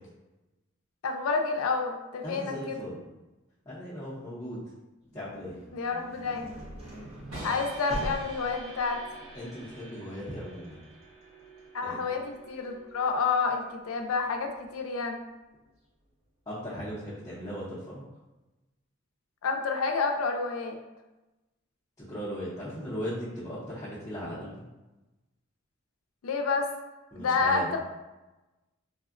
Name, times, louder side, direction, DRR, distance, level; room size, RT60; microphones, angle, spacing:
voice 1, 1.0-2.9 5.7-6.5 7.4-9.0 11.7-15.2 19.4-20.8 26.2-26.7 27.2-27.8, left 4 dB, 90° left, 4 dB, 0.4 m, -29 dB
voice 2, 2.2-3.0 3.7-4.6 5.1-5.5 9.3-10.8 11.8-12.0 16.5-18.0 22.1-24.5 27.1-27.7, equal, 15° left, -11 dB, 0.6 m, -37 dB
sound 1, 5.0-14.8, equal, 30° right, 0.5 m, -44 dB
sound 2, 7.3-13.3, right 2 dB, 90° right, 1.1 m, -47 dB
3.4 x 2.0 x 2.4 m, 1.1 s
head